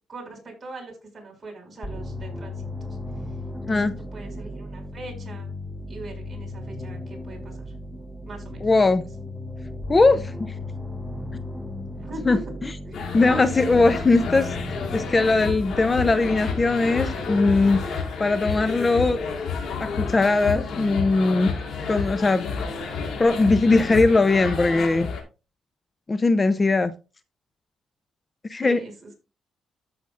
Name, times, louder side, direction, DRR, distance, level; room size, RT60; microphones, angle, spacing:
voice 1, 0.1-2.5 2.8-3.0 3.7-5.5 5.9-7.7 8.2-8.7 10.1-10.3 11.9-12.5 12.9-13.0 28.6-29.1, right 2 dB, 30° right, 6.1 m, -41 dB
sound 1, 1.8-17.8, left 1 dB, 10° left, 1.5 m, -36 dB
voice 2, 8.6-9.0 9.9-10.2 12.3-12.4 13.1-14.5 14.9-19.2 19.8-21.5 21.9-22.5 23.2-25.1 26.1-26.9 28.5-28.8, left 3 dB, 25° left, 0.6 m, -20 dB
sound 2, 12.9-25.2, left 5 dB, 70° left, 5.1 m, -30 dB
13.5 x 7.9 x 2.5 m
cardioid pair, 110°, 0 cm